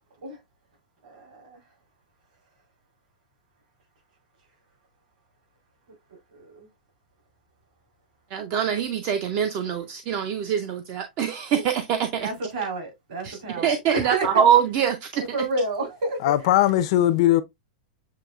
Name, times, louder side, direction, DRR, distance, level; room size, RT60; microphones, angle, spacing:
voice 1, 1.0-1.6 6.1-6.7 12.2-14.5 15.1-16.7, right 2 dB, 55° right, 3.0 m, -30 dB
voice 2, 8.3-12.2 13.2-15.3, right 8 dB, 25° right, 0.4 m, -24 dB
voice 3, 16.2-17.4, left 13 dB, 40° left, 0.4 m, -19 dB
7.4 x 3.0 x 2.3 m
supercardioid pair, 175°, 5 cm